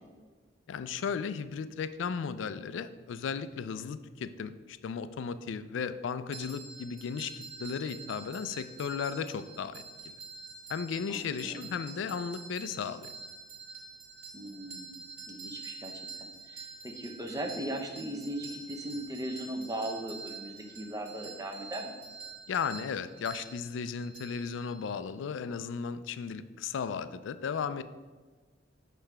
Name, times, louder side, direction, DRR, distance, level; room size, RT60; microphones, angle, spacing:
voice 1, 0.7-9.8 10.7-13.1 22.5-27.8, left 6 dB, 70° left, 13 dB, 0.3 m, -35 dB
sound 1, 6.3-25.1, right 4 dB, 75° right, 2.0 m, -47 dB
voice 2, 11.1-11.7 14.3-15.0 15.3-22.0, right 1 dB, 20° right, 4 dB, 0.6 m, -38 dB
6.6 x 3.3 x 5.8 m, 1.4 s
head